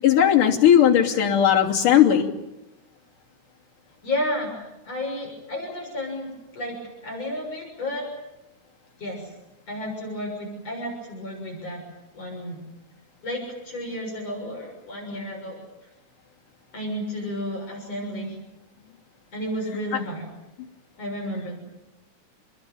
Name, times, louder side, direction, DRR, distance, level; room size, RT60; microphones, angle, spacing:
voice 1, 0.0-2.3 19.9-20.0, left 10 dB, 80° left, -1 dB, 4.5 m, -17 dB
voice 2, 4.0-4.5 4.8-8.1 9.0-9.3 9.7-11.8 12.1-12.6 13.2-15.6 16.7-18.4 19.3-20.3 21.0-21.6, left 1 dB, 50° left, 0 dB, 7.9 m, -32 dB
28.5 x 21.5 x 9.2 m, 0.97 s
omnidirectional pair, 3.7 m